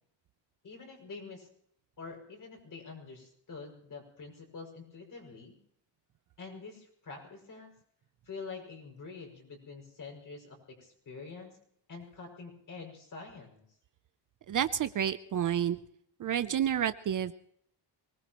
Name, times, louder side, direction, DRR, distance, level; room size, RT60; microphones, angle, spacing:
voice 1, 0.6-1.5 2.0-5.6 6.4-7.7 8.3-11.5 11.9-13.6, left 4 dB, 45° left, 2 dB, 6.0 m, -46 dB
voice 2, 14.5-15.8 16.2-17.3, right 9 dB, 45° right, 13 dB, 0.6 m, -29 dB
24.0 x 19.5 x 3.0 m, 0.66 s
cardioid pair, 145°, 45 cm